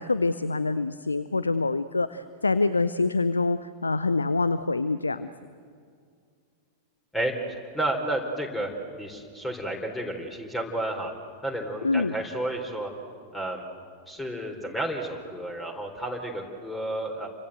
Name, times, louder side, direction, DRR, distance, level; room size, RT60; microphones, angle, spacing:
voice 1, 0.0-5.3 11.8-12.1, left 3 dB, 80° left, 14 dB, 0.7 m, -25 dB
voice 2, 7.1-11.1 11.4-12.9 13.3-13.6 14.1-17.3, right 1 dB, 10° left, 3 dB, 3.7 m, -31 dB
29.5 x 25.0 x 7.9 m, 2.2 s
figure-of-eight pair, 90°, 0 cm